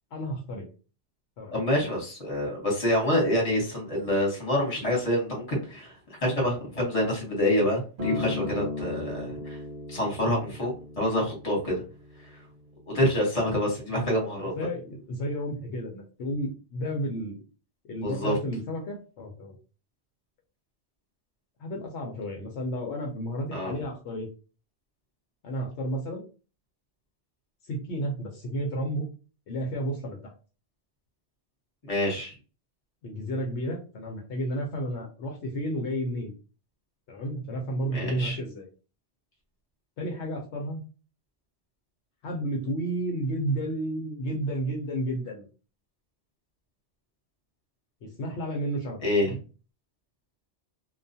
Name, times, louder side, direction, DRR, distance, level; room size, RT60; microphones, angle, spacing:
voice 1, 0.1-0.7 1.4-1.5 14.6-17.4 17.9-19.6 21.6-24.3 25.4-26.3 27.7-29.1 29.5-30.3 33.0-36.3 37.1-38.7 40.0-40.8 42.2-45.5 48.0-49.0, right 1 dB, 75° left, 1 dB, 0.9 m, -32 dB
voice 2, 1.5-5.9 6.2-9.6 9.9-11.8 12.9-14.5 18.0-18.3 23.5-23.7 31.8-32.3 37.9-38.4 49.0-49.3, left 1 dB, 30° left, -2 dB, 1.2 m, -27 dB
Acoustic guitar, 8.0-12.3 13.1-13.2, left 3 dB, 50° right, 0.8 m, -36 dB
2.3 x 2.3 x 2.6 m, 0.34 s
omnidirectional pair, 1.2 m